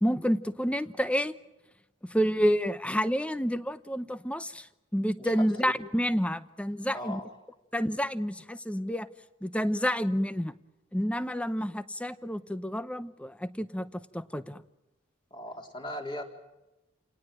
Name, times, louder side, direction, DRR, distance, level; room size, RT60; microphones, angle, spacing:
voice 1, 0.0-1.3 2.1-4.7 4.9-7.2 7.7-9.1 9.4-10.5 10.9-13.9 14.1-14.6, equal, 5° left, 13 dB, 0.8 m, -29 dB
voice 2, 5.2-5.7 6.9-7.3 15.3-16.2, left 1 dB, 25° left, 2 dB, 4.1 m, -38 dB
29.5 x 19.0 x 9.2 m, 0.98 s
head